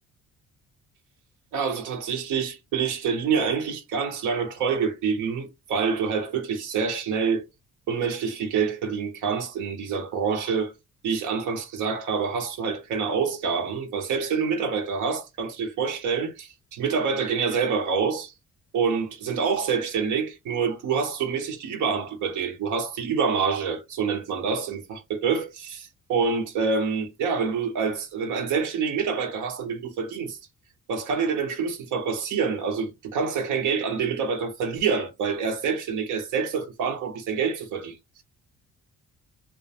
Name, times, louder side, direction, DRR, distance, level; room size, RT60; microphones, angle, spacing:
voice 1, 1.5-7.5 7.9-10.7 11.0-18.3 18.7-30.4 30.9-38.2, right 5 dB, 80° right, 0.7 m, -27 dB
2.3 x 2.1 x 2.7 m
cardioid pair, 90°, 30 cm